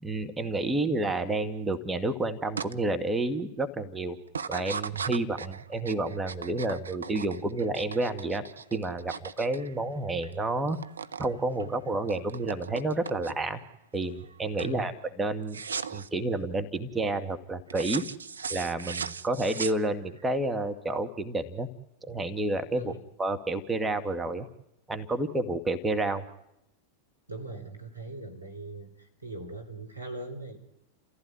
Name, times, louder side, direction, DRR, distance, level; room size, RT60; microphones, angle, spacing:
voice 1, 0.0-4.2 4.5-10.8 11.2-13.6 13.9-14.9 15.2-15.6 15.9-18.0 18.5-21.7 22.1-22.9 23.2-24.5 24.9-26.2, right 2 dB, 10° right, 7 dB, 1.9 m, -30 dB
sound 1, 2.6-2.7 3.2-3.6 4.3-10.3 10.6-11.3 11.6-13.6 14.0-14.3 14.6-14.8 15.5-16.1 17.7-20.2, right 6 dB, 75° right, 0.9 m, -38 dB
voice 2, 14.6-15.0 22.7-23.0 27.3-30.6, right 2 dB, 90° right, 4 dB, 4.4 m, -40 dB
30.0 x 15.5 x 9.6 m, 0.82 s
figure-of-eight pair, 90°, 0 cm